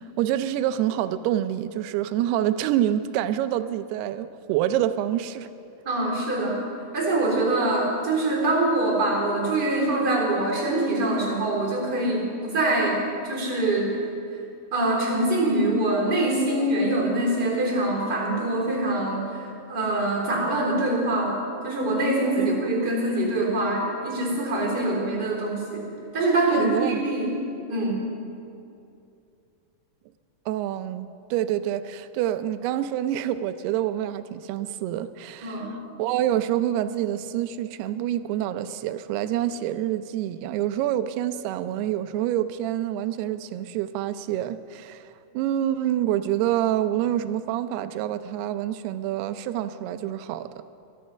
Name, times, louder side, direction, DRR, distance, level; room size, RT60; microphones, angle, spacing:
voice 1, 0.0-5.5 22.4-22.5 26.5-27.0 30.5-50.5, right 12 dB, 85° right, 12 dB, 2.7 m, -27 dB
voice 2, 5.8-6.6 6.9-14.0 14.7-19.2 19.7-25.8 26.1-27.4 27.7-28.0 35.4-35.7, right 2 dB, 25° right, -2 dB, 4.2 m, -24 dB
22.5 x 10.5 x 5.6 m, 2.6 s
omnidirectional pair, 4.6 m